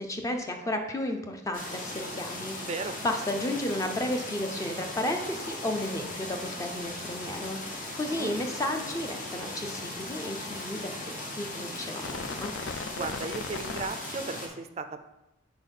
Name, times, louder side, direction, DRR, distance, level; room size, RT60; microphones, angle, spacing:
voice 1, 0.0-2.7 3.0-12.5, left 1 dB, 15° left, 4 dB, 0.5 m, -33 dB
sound 1, 1.5-14.5, left 2 dB, 45° left, 0.9 m, -38 dB
voice 2, 2.6-3.0 8.1-8.3 13.0-15.1, right 4 dB, 35° right, 8 dB, 0.3 m, -36 dB
sound 2, 5.8-10.1 12.0-13.9, left 4 dB, 70° left, 0.4 m, -42 dB
4.5 x 4.1 x 5.3 m, 0.96 s
head